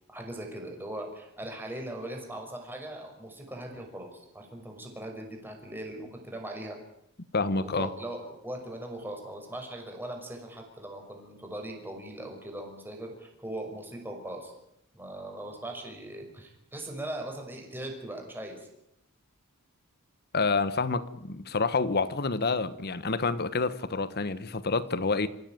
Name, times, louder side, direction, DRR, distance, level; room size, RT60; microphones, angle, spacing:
voice 1, 0.1-6.8 7.6-14.5 14.9-18.7, right 1 dB, 10° right, 5.9 m, -40 dB
voice 2, 7.3-7.9 20.3-25.3, left 4 dB, 45° left, 1.1 m, -28 dB
27.5 x 16.0 x 9.1 m
head